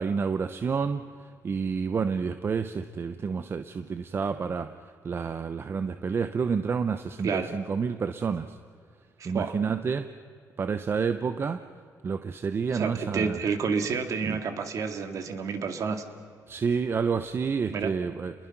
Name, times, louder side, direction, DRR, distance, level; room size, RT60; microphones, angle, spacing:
voice 1, 0.0-4.7 5.0-8.6 9.2-10.1 10.6-11.6 12.0-13.4 14.2-14.4 16.5-18.3, right 5 dB, 35° right, 10 dB, 0.8 m, -29 dB
voice 2, 9.2-9.5 12.7-16.0 17.7-17.9, right 5 dB, 55° right, 6 dB, 2.3 m, -29 dB
29.5 x 21.5 x 6.0 m, 2.3 s
cardioid pair, 110°, 7 cm